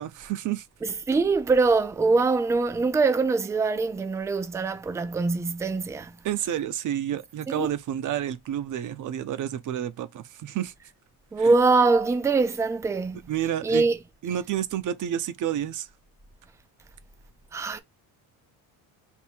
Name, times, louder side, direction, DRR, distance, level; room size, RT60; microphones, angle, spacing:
voice 1, 0.0-0.7 6.2-10.7 11.4-11.5 13.3-13.9 14.2-15.9, right 11 dB, 50° right, 0.6 m, -30 dB
voice 2, 0.8-6.2 7.5-7.7 11.3-13.2 13.6-14.0 17.5-17.8, right 3 dB, 10° right, 0.3 m, -23 dB
3.6 x 2.6 x 4.4 m
cardioid pair, 125°, 40 cm